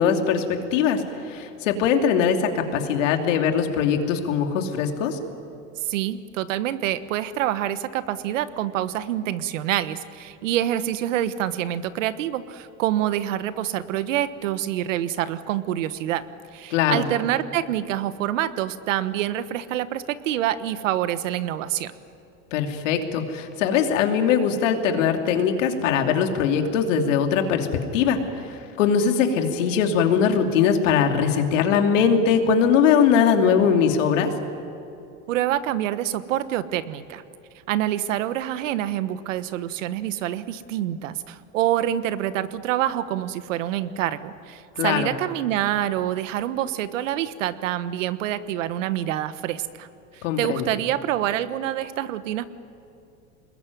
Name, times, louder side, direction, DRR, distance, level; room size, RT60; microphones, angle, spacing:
voice 1, 0.0-5.2 16.7-17.1 22.5-34.3 44.8-45.1 50.2-50.6, left 7 dB, 85° left, 4 dB, 2.9 m, -21 dB
voice 2, 5.8-16.2 16.5-21.9 35.3-37.2 37.7-49.9 50.1-52.4, right 12 dB, 90° right, 13 dB, 1.3 m, -26 dB
26.0 x 21.0 x 9.4 m, 2.7 s
supercardioid pair, 130°, 37 cm